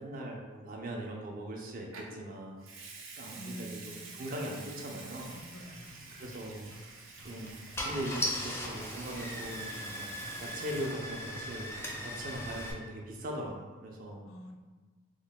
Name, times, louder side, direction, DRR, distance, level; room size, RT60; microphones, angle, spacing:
voice 1, 0.0-2.7 3.2-5.3 5.7-6.7 7.2-7.6 7.8-10.1 10.4-11.7 12.0-14.2, right 1 dB, 45° right, 0 dB, 0.4 m, -40 dB
Water tap faucet / Sink (filling or washing) / Liquid, 1.9-2.2 2.6-11.4 11.6-12.0, right 4 dB, 90° right, 0.6 m, -49 dB
voice 2, 3.3-4.2 5.3-6.3 14.3-14.6, equal, 75° left, 4 dB, 0.4 m, -48 dB
sound 1, 5.2-13.1, left 1 dB, 90° left, 0.8 m, -52 dB
Car / Engine starting, 6.7-6.9 7.5-7.6 7.8-12.7, left 1 dB, 15° left, 0.4 m, -38 dB
3.1 x 2.1 x 3.8 m, 1.4 s
head